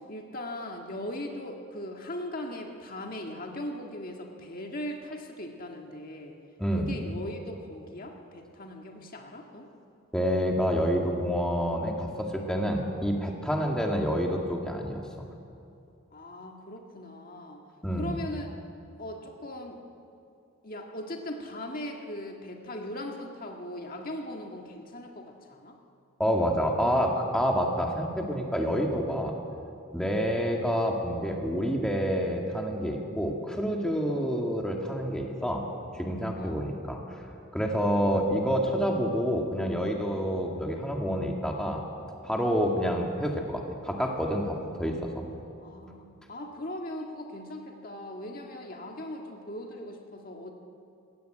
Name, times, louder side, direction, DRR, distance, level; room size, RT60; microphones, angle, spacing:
voice 1, 0.1-6.3 6.7-9.7 13.6-13.7 16.1-17.6 18.0-18.5 19.0-19.8 20.6-25.8 30.2-30.4 34.1-34.3 36.4-36.6 42.6-42.8 45.6-50.5, left 1 dB, 40° left, 2 dB, 1.8 m, -39 dB
voice 2, 6.6-6.9 10.1-15.0 17.8-18.2 26.2-29.3 29.9-35.7 35.9-37.2 37.5-41.8 42.2-45.2, equal, 5° left, 0 dB, 2.0 m, -28 dB
21.5 x 16.5 x 9.1 m, 2.6 s
head